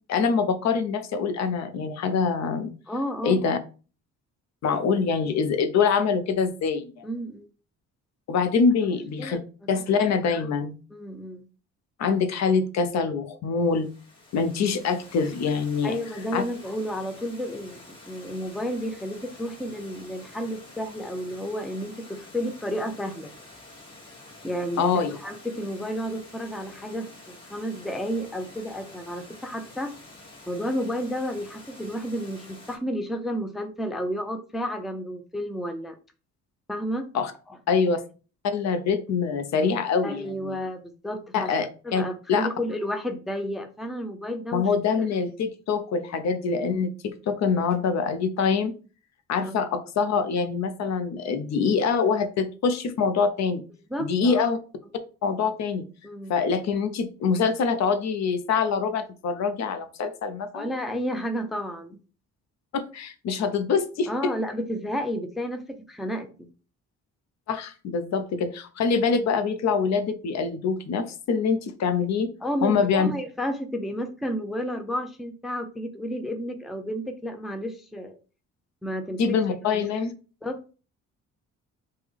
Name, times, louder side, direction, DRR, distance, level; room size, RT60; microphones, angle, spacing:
voice 1, 0.1-2.7 3.2-3.6 4.6-7.1 8.3-9.4 9.7-10.8 12.0-13.9 14.3-16.0 16.3-16.4 24.8-25.2 37.1-37.3 37.7-38.0 38.5-40.6 41.3-42.0 42.3-42.5 44.5-48.7 49.3-53.6 54.0-54.6 55.2-55.9 56.3-60.7 62.7-64.3 67.5-72.3 72.6-73.1 79.2-80.1, left 5 dB, 65° left, 10 dB, 0.6 m, -25 dB
voice 2, 2.9-3.4 7.0-7.5 8.8-9.4 9.7-9.8 10.9-11.5 14.7-14.8 15.8-23.3 24.4-29.9 30.5-35.9 36.7-37.1 40.0-41.5 41.8-44.7 49.4-49.6 53.9-54.5 56.0-56.3 60.5-62.0 64.1-66.5 72.4-78.2 78.8-79.4 79.7-80.1 80.4-80.7, equal, ahead, 7 dB, 0.4 m, -31 dB
Water, 13.6-32.8, left 2 dB, 15° left, 1.0 m, -48 dB
3.3 x 2.2 x 3.4 m, 0.36 s
cardioid pair, 90°, 30 cm